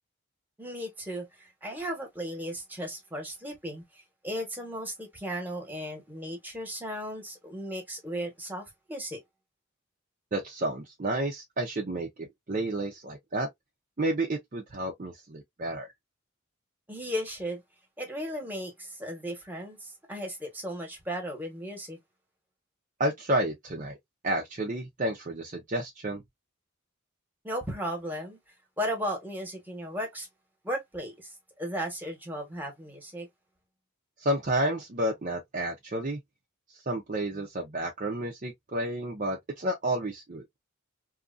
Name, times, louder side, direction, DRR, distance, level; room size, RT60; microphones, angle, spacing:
voice 1, 0.6-9.2 16.9-17.6 18.0-22.0 27.4-28.4 28.8-30.3 30.6-33.3, equal, 10° right, 1.2 m, -36 dB
voice 2, 10.3-13.5 14.0-15.9 23.0-24.0 24.2-26.2 34.2-36.2 36.9-40.4, right 1 dB, 40° right, 0.6 m, -31 dB
2.8 x 2.4 x 2.5 m
head